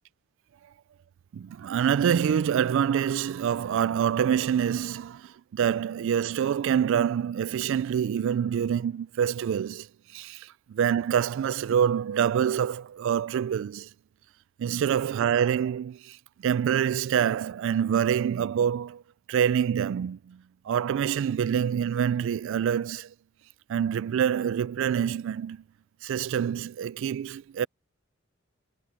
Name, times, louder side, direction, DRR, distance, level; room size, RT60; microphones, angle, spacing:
voice 1, 1.3-9.9 10.1-13.9 14.6-16.2 16.4-19.0 19.3-20.4 20.7-23.1 23.7-25.6 26.0-27.7, right 8 dB, 65° right, 0.3 m, -26 dB
head